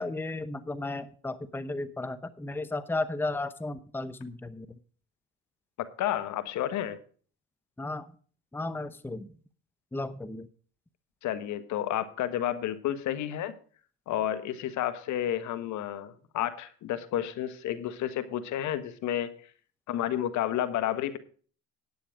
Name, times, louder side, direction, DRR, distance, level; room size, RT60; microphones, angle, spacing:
voice 1, 0.0-4.7 7.8-8.0 8.5-9.3 9.9-10.5, left 2 dB, 5° left, 13 dB, 0.8 m, -34 dB
voice 2, 6.0-7.0 11.2-13.5 14.1-19.3 19.9-21.2, left 11 dB, 65° left, 12 dB, 1.3 m, -31 dB
10.5 x 8.5 x 4.9 m, 0.43 s
supercardioid pair, 70°, 32 cm